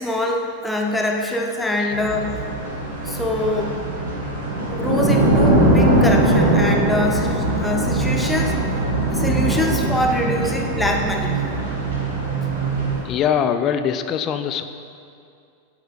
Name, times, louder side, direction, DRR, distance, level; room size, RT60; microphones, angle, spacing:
voice 1, 0.0-2.4 3.0-3.8 4.7-8.6 9.1-11.5, left 1 dB, 5° left, 0 dB, 0.8 m, -24 dB
sound 1, 1.9-13.0, right 2 dB, 65° right, 1.3 m, -21 dB
voice 2, 13.0-14.6, left 8 dB, 35° left, 9 dB, 0.4 m, -22 dB
7.9 x 4.9 x 4.4 m, 2.4 s
figure-of-eight pair, 90°, 0 cm